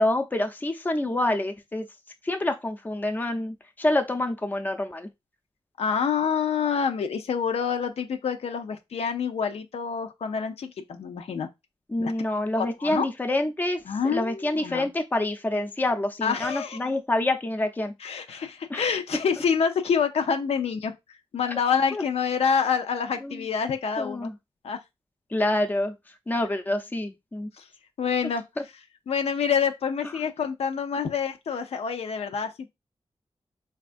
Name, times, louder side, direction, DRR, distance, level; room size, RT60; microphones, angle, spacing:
voice 1, 0.0-1.9 2.2-5.1 11.9-17.9 18.7-18.8 21.9-22.0 23.2-23.5 24.0-24.3 25.3-25.9 26.3-27.5, left 1 dB, 15° left, 0.5 m, -27 dB
voice 2, 5.8-11.5 12.0-12.1 12.6-13.1 13.9-14.9 16.2-16.8 18.0-20.9 21.3-24.3 24.6-24.8 27.6-27.7 28.0-28.4 29.1-32.7, left 6 dB, 85° left, 0.5 m, -27 dB
4.1 x 2.4 x 2.5 m
wide cardioid pair, 110°, 10 cm